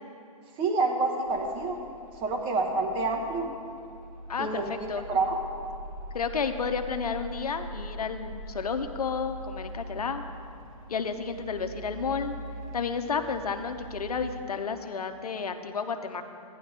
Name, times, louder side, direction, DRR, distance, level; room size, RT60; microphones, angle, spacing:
voice 1, 0.6-1.8 2.2-3.5 4.4-4.7 5.1-5.4, right 3 dB, 25° right, 2 dB, 1.3 m, -27 dB
sound 1, 1.3-14.2, right 1 dB, 70° right, 2.1 m, -43 dB
voice 2, 4.3-5.1 6.1-10.2 10.9-12.3 12.7-16.2, left 5 dB, 80° left, 7 dB, 0.8 m, -31 dB
13.5 x 10.0 x 3.3 m, 2.6 s
hypercardioid pair, 125°, 19 cm